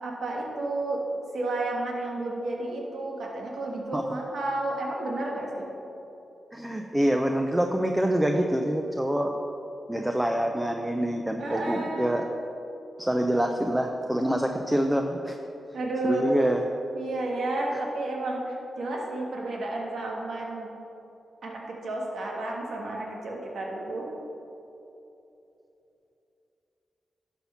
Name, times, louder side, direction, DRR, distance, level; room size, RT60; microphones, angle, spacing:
voice 1, 0.0-5.7 11.4-12.1 15.7-16.3 16.9-20.7 21.4-24.1, right 2 dB, 75° right, -1 dB, 1.5 m, -31 dB
voice 2, 6.5-9.4 9.9-12.2 13.0-15.4 16.0-16.6, right 1 dB, 10° right, 3 dB, 0.6 m, -26 dB
11.5 x 4.4 x 5.7 m, 3.0 s
cardioid pair, 60°, 0 cm